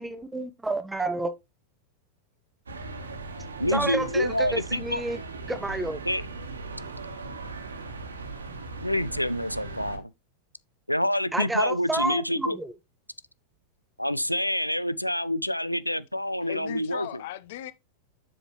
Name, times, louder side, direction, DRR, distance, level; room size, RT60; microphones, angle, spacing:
voice 1, 0.0-1.3 3.7-5.2 5.5-6.0 11.3-12.7, right 2 dB, 10° right, 0.7 m, -30 dB
sound 1, 2.7-10.0, right 3 dB, 75° right, 1.3 m, -38 dB
voice 2, 3.6-5.0 6.1-6.2 8.8-10.1 10.9-12.6 14.0-17.2, left 1 dB, 90° left, 0.4 m, -27 dB
voice 3, 16.4-17.7, left 13 dB, 55° left, 0.8 m, -37 dB
7.6 x 6.4 x 3.2 m
figure-of-eight pair, 90°, 0 cm